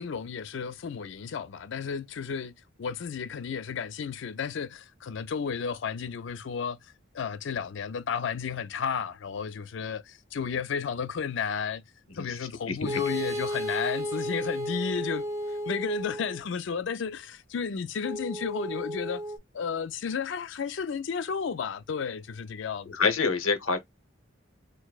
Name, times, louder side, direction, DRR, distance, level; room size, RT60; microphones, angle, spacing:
voice 1, 0.0-6.8 7.1-11.8 12.2-15.2 15.7-19.2 19.5-23.0, left 6 dB, 65° left, 0.4 m, -33 dB
voice 2, 12.7-13.0 22.9-23.8, left 4 dB, 85° left, 0.9 m, -27 dB
sound 1, 12.9-16.4 18.0-19.4, equal, 15° right, 0.5 m, -33 dB
4.5 x 2.1 x 2.3 m
head